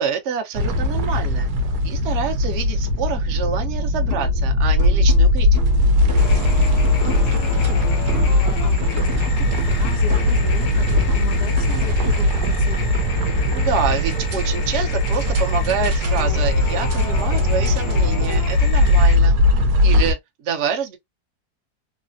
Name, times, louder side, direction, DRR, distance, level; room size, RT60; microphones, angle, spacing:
voice 1, 0.0-1.5 1.8-5.8 13.5-19.3 19.8-21.0, right 7 dB, 60° right, 0.8 m, -27 dB
sound 1, 0.5-20.1, left 1 dB, 80° right, 1.2 m, -19 dB
sound 2, 4.1-4.4 4.8-8.5 8.8-12.1, left 3 dB, 15° right, 0.7 m, -37 dB
sound 3, 6.2-19.2, equal, 85° left, 1.2 m, -30 dB
voice 2, 6.8-7.9 8.6-13.1, left 6 dB, 60° left, 0.6 m, -36 dB
3.1 x 2.0 x 2.4 m
omnidirectional pair, 1.7 m